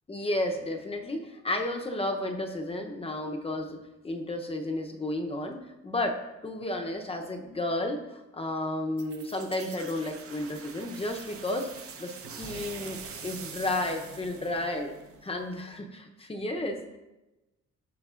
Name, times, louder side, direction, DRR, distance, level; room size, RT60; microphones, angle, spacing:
voice 1, 0.1-14.9 15.2-17.0, left 1 dB, 20° left, 3 dB, 0.7 m, -32 dB
sound 1, 9.0-15.6, right 5 dB, 50° right, 0.8 m, -44 dB
13.5 x 4.6 x 2.4 m, 1.0 s
cardioid pair, 145°, 29 cm